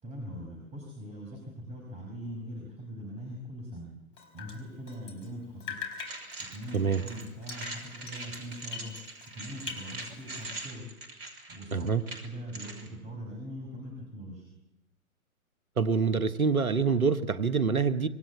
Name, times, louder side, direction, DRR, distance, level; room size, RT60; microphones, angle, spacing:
voice 1, 0.0-3.9 4.3-5.8 6.5-8.9 9.3-10.9 11.5-11.9 12.2-14.4, equal, 15° right, 0 dB, 5.3 m, -41 dB
Drip, 4.2-5.3 5.6-9.3 9.6-10.6, left 5 dB, 25° left, 4.8 m, -43 dB
sound 1, 6.0-12.9, right 2 dB, 45° right, 5.8 m, -43 dB
voice 2, 11.7-12.0 15.8-18.1, right 5 dB, 80° right, 13 dB, 1.4 m, -26 dB
25.5 x 23.5 x 8.6 m, 0.88 s
figure-of-eight pair, 125°, 43 cm